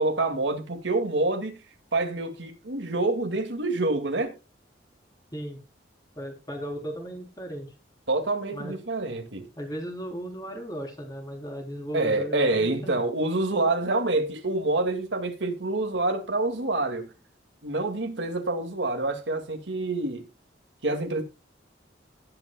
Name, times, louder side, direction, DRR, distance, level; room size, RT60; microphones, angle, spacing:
voice 1, 0.0-1.6 1.9-4.3 8.1-9.5 11.9-17.1 17.6-20.3 20.8-21.2, right 2 dB, 80° right, 2.0 m, -27 dB
voice 2, 6.2-7.7 8.5-8.8 9.6-13.1, equal, 20° left, 3.5 m, -36 dB
18.0 x 8.8 x 2.2 m
head